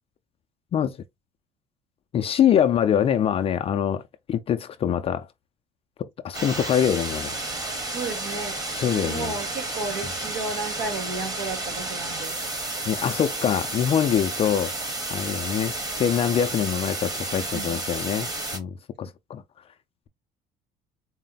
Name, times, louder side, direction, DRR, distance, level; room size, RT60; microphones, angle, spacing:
voice 1, 2.1-4.0 4.3-5.3 6.0-7.3 8.7-9.3 12.9-14.7 15.1-18.3 18.5-19.4, left 9 dB, 35° left, 0.4 m, -24 dB
sound 1, 6.3-18.6, right 2 dB, 20° right, 1.0 m, -31 dB
voice 2, 7.9-8.6 8.9-12.4 17.3-17.8, right 3 dB, 80° right, 1.6 m, -33 dB
4.2 x 2.1 x 3.9 m
cardioid pair, 145°, 18 cm